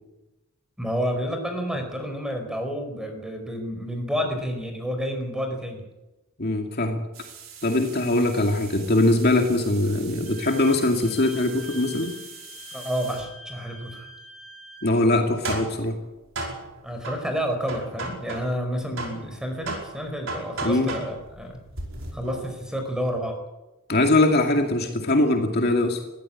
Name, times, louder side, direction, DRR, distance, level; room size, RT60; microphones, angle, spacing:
voice 1, 0.8-5.8 12.7-14.1 16.8-21.6 22.1-23.3, equal, 5° right, 5 dB, 4.6 m, -30 dB
voice 2, 6.4-7.1 7.6-12.1 14.8-16.0 20.6-20.9 23.9-26.0, left 2 dB, 45° left, 3 dB, 2.3 m, -22 dB
sound 1, 7.1-13.3 15.1-18.7 19.0-22.6, right 3 dB, 60° right, 5.2 m, -37 dB
Wind instrument woodwind instrument, 10.2-14.9, equal, 30° left, 5.5 m, -44 dB
22.0 x 15.0 x 8.6 m, 1.0 s
head